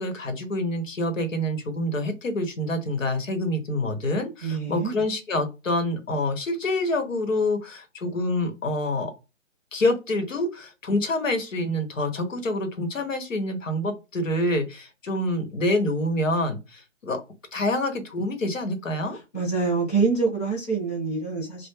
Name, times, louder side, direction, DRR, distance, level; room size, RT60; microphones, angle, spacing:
voice 1, 0.0-9.1 9.7-17.2 17.5-19.2, left 1 dB, 80° left, 0.9 m, -27 dB
voice 2, 4.4-4.9 19.1-21.7, right 4 dB, 10° left, 0.6 m, -26 dB
2.2 x 2.0 x 3.1 m
figure-of-eight pair, 140°, 38 cm